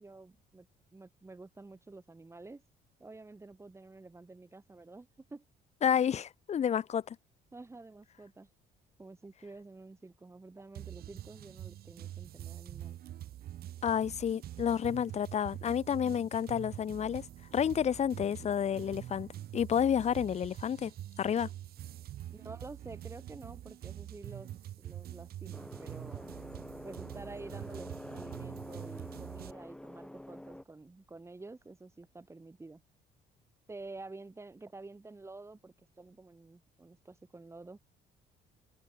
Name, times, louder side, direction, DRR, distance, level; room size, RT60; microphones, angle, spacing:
voice 1, 0.0-2.6 3.0-5.4 7.5-8.5 9.0-13.0 15.9-16.2 22.3-26.3 26.8-32.8 33.7-37.8, right 3 dB, 15° right, 3.4 m, -50 dB
voice 2, 5.8-7.2 13.8-17.2 17.5-20.9 21.2-21.5, left 8 dB, 40° left, 0.9 m, -30 dB
sound 1, 10.7-29.5, right 12 dB, 65° right, 4.7 m, -45 dB
sound 2, 25.5-30.6, left 1 dB, 5° left, 1.9 m, -47 dB
cardioid pair, 110°, 17 cm